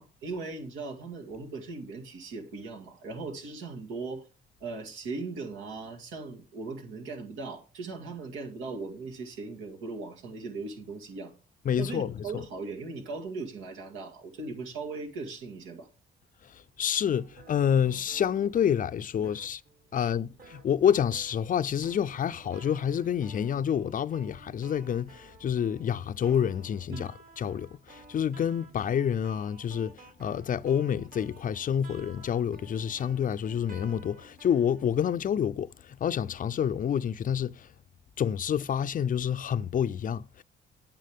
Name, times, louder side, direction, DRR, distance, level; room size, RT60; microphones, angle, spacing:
voice 1, 0.0-4.2 4.6-11.3 11.8-15.9 19.2-19.3 19.9-20.1 26.9-27.1, right 3 dB, 90° right, 2.1 m, -38 dB
voice 2, 11.6-12.2 16.5-19.6 19.9-37.7 38.2-40.4, left 8 dB, 45° left, 0.5 m, -28 dB
sound 1, 17.1-35.1, right 3 dB, 45° right, 2.0 m, -53 dB
9.2 x 7.2 x 3.6 m
cardioid pair, 90°, 20 cm